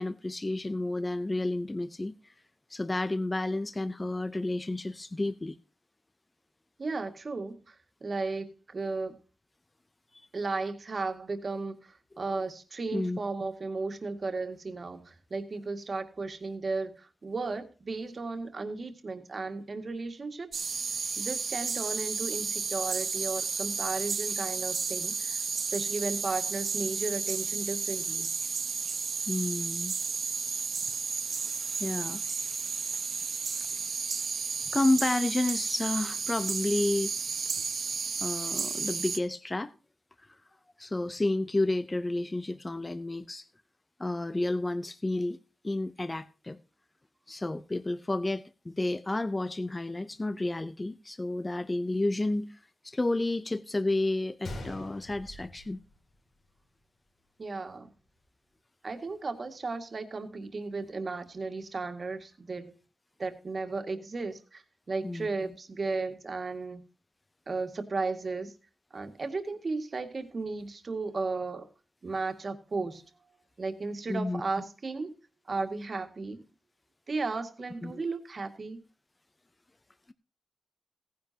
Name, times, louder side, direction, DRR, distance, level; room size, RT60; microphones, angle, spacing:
voice 1, 0.0-2.2 2.7-5.6 10.1-10.3 12.9-13.2 29.3-29.9 31.8-32.2 34.7-37.1 38.2-39.7 40.8-43.5 44.0-45.4 45.6-46.6 47.3-52.6 52.8-55.8 65.0-65.5 74.1-74.4 77.8-78.0, left 2 dB, 20° left, 0.6 m, -31 dB
voice 2, 6.8-7.8 8.0-9.2 10.3-11.8 12.2-20.6 21.2-25.4 25.7-28.3 57.4-57.9 58.8-62.7 63.2-66.8 67.5-68.5 68.9-71.7 72.0-73.0 73.6-75.1 75.5-76.4 77.1-78.8, right 3 dB, 35° right, 1.9 m, -35 dB
sound 1, 20.5-39.2, right 5 dB, 55° right, 1.1 m, -32 dB
Gunshot gunfire, 54.4-56.5 56.7-56.8 57.5-57.7, left 1 dB, 75° left, 4.9 m, -43 dB
17.5 x 10.5 x 2.8 m
wide cardioid pair, 160°, 0 cm